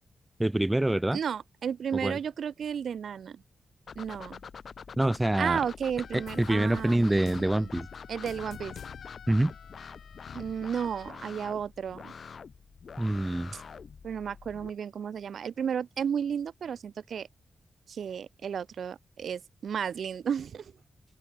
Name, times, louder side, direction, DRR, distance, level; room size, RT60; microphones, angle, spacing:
voice 1, 0.4-1.2 1.9-2.2 5.0-5.6 6.1-7.9 9.3-9.5 13.0-13.5, right 1 dB, 10° right, 0.4 m, -26 dB
voice 2, 1.1-3.4 4.0-4.4 5.4-7.7 8.1-8.7 10.3-12.1 13.5-13.6 14.0-17.3 17.9-20.7, right 7 dB, 80° right, 0.8 m, -33 dB
sound 1, 3.9-14.7, left 6 dB, 55° left, 2.2 m, -46 dB
sound 2, 6.0-11.1, left 8 dB, 85° left, 2.5 m, -47 dB
open air
wide cardioid pair, 155°, 0 cm